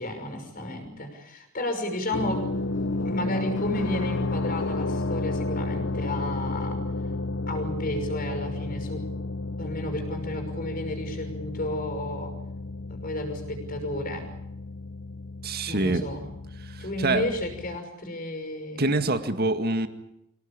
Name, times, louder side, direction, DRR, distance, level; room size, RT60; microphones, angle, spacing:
voice 1, 0.0-2.5 3.0-6.8 7.5-9.1 9.6-12.4 12.9-14.3 15.7-16.3 16.8-19.0, left 1 dB, 45° left, 6 dB, 6.0 m, -32 dB
sound 1, 2.1-17.8, left 2 dB, 60° left, 0.9 m, -32 dB
voice 2, 15.4-16.0 16.6-17.2 18.8-19.9, right 2 dB, 45° right, 9 dB, 2.0 m, -25 dB
26.0 x 17.5 x 8.8 m, 0.85 s
head